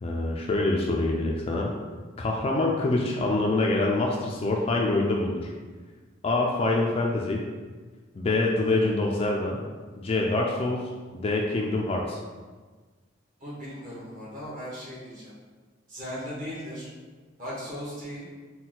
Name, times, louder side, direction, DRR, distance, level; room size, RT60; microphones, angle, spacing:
voice 1, 0.0-1.7 2.2-5.5 6.2-7.4 8.2-9.6 10.0-12.2, left 2 dB, 30° left, -1 dB, 0.3 m, -25 dB
voice 2, 13.4-15.3 15.9-16.9 17.4-18.2, equal, 45° right, -8 dB, 1.4 m, -37 dB
4.2 x 2.2 x 3.9 m, 1.4 s
head